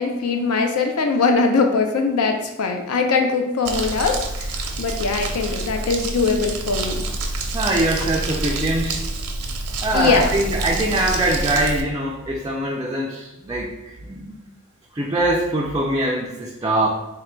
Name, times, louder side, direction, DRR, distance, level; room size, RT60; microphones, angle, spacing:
voice 1, 0.0-4.5 4.8-7.1 9.9-10.3, left 4 dB, 75° left, 4 dB, 0.4 m, -21 dB
Crumpling crinkling, 3.6-11.8, right 2 dB, 80° right, 0.6 m, -27 dB
voice 2, 7.5-9.0 9.8-14.4 14.9-16.9, right 1 dB, 15° right, -1 dB, 0.3 m, -23 dB
3.7 x 2.2 x 4.3 m, 1.1 s
head